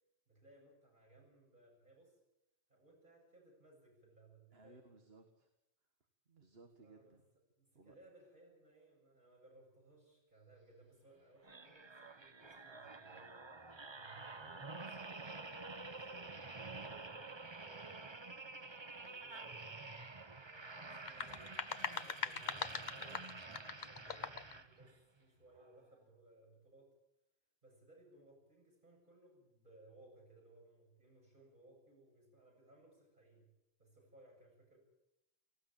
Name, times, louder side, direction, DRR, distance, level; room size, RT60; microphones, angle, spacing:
voice 1, 0.3-2.2 2.7-4.9 6.8-7.2 7.6-13.5 13.9-18.1 18.5-19.9 20.3-23.3 23.8-26.9 27.6-33.5 33.8-34.8, right 2 dB, 50° right, -1 dB, 8.0 m, -64 dB
voice 2, 4.5-5.5 6.3-7.2 7.7-8.0 13.9-14.1, right 3 dB, 65° right, 5 dB, 2.0 m, -61 dB
sound 1, 11.4-25.0 25.6-25.7, right 3 dB, 25° right, 0.9 m, -49 dB
sound 2, 20.9-24.6, left 5 dB, 45° left, 1.0 m, -42 dB
19.0 x 16.0 x 8.8 m, 0.89 s
omnidirectional pair, 1.1 m